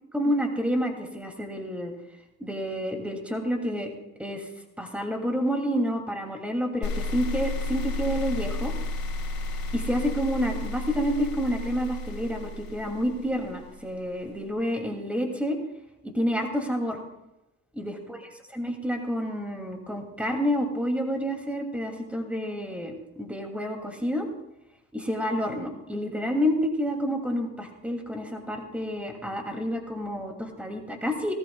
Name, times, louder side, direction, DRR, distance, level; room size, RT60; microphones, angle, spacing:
voice 1, 0.1-1.9 2.4-3.9 4.2-4.5 4.8-8.7 9.7-15.6 16.0-17.0 17.7-18.2 18.5-22.9 23.2-24.3 24.9-31.3, equal, 5° right, 2 dB, 2.7 m, -29 dB
sound 1, 6.8-14.0, left 2 dB, 70° left, 2.5 m, -32 dB
20.0 x 14.0 x 2.4 m, 0.93 s
cardioid pair, 90°, 30 cm